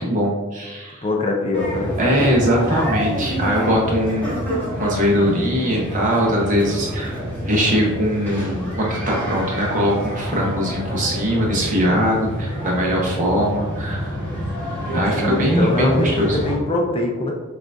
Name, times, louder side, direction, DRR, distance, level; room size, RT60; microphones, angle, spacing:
voice 1, 0.0-1.0 2.0-14.2 14.9-16.4, equal, 40° right, -2 dB, 0.9 m, -21 dB
voice 2, 1.0-2.0 15.2-17.3, left 2 dB, 30° left, 1 dB, 0.4 m, -22 dB
sound 1, 1.5-16.5, equal, 10° left, 1.4 m, -27 dB
6.3 x 2.4 x 2.5 m, 1.2 s
head